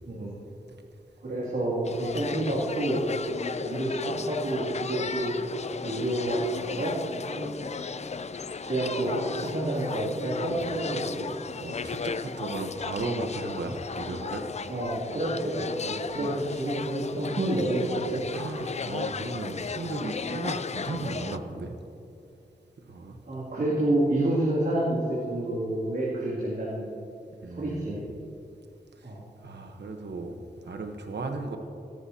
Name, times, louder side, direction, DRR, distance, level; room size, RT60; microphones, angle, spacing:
voice 1, 1.2-3.1 3.6-5.4 5.8-7.0 7.3-7.6 8.6-11.3 14.7-18.3 23.3-27.0 27.5-28.0 29.0-29.2, right 1 dB, 70° right, -8 dB, 2.6 m, -29 dB
sound 1, 1.8-21.4, left 5 dB, 40° left, 0.4 m, -35 dB
voice 2, 11.6-14.4 16.1-16.3 18.3-21.8 22.9-23.2 27.4-28.0 29.4-31.6, right 3 dB, 90° right, 4 dB, 1.1 m, -35 dB
17.5 x 14.0 x 2.9 m, 2.7 s
wide cardioid pair, 120°, 17 cm